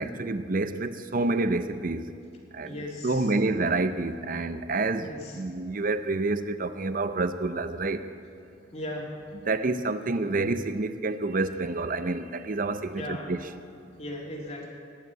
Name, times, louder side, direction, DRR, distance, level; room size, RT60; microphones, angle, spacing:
voice 1, 0.0-2.0 2.5-8.1 9.4-13.4, right 3 dB, 45° right, 11 dB, 0.7 m, -28 dB
voice 2, 2.6-3.3 5.0-5.4 8.7-9.2 12.9-13.3 14.0-14.7, left 1 dB, 35° left, -2 dB, 2.3 m, -37 dB
20.0 x 8.2 x 8.1 m, 2.4 s
head